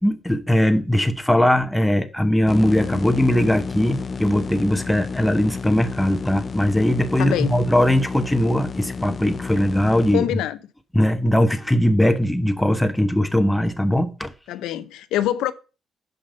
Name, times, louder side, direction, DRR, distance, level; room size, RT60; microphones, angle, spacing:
voice 1, 0.0-10.3 10.9-14.3, left 1 dB, 5° left, 1.0 m, -20 dB
sound 1, 2.5-10.2, left 4 dB, 40° left, 0.4 m, -31 dB
voice 2, 7.2-7.6 10.1-10.6 14.5-15.5, left 13 dB, 90° left, 0.5 m, -24 dB
6.6 x 5.6 x 5.4 m
cardioid pair, 90°, 0 cm